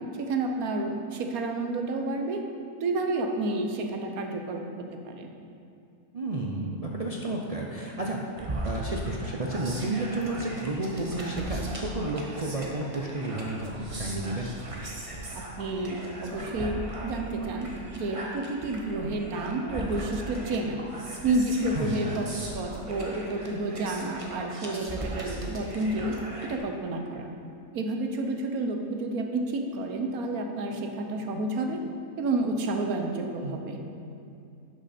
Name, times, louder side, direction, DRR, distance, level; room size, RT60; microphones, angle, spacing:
voice 1, 0.2-2.4 2.8-5.3 15.3-17.7 17.9-20.8 21.2-26.2 26.4-27.3 27.7-31.8 32.2-33.8, right 2 dB, 90° right, 4 dB, 1.3 m, -30 dB
voice 2, 6.1-8.2 8.6-14.5 21.7-22.0, right 2 dB, 45° right, -1 dB, 0.5 m, -31 dB
sound 1, 8.4-26.6, right 1 dB, 25° right, 1.0 m, -38 dB
11.0 x 6.1 x 4.3 m, 2.5 s
omnidirectional pair, 1.5 m